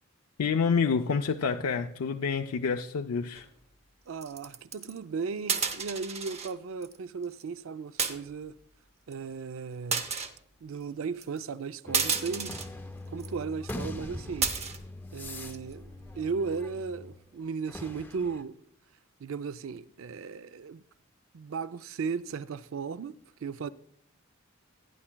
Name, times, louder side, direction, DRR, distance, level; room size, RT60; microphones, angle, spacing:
voice 1, 0.4-3.5, left 5 dB, 80° left, 0.5 m, -28 dB
sound 1, 3.4-3.6 4.2-5.0 5.5-6.5 6.8-7.0 7.2-7.4 8.0-8.5 9.1-9.2 9.9-10.3 11.2-11.4 11.9-12.7 13.2-13.3 13.7-13.8 14.4-14.8 15.3-15.7, right 5 dB, 30° right, 0.7 m, -31 dB
voice 2, 4.1-8.5 9.1-10.1 10.6-12.5 13.1-14.5 15.1-15.9 16.2-18.6 19.2-20.8 21.3-23.1 23.4-23.7, right 5 dB, 65° right, 0.4 m, -36 dB
sound 2, 11.9-17.2 17.7-18.4, left 1 dB, 10° left, 0.4 m, -42 dB
17.0 x 9.8 x 2.2 m
head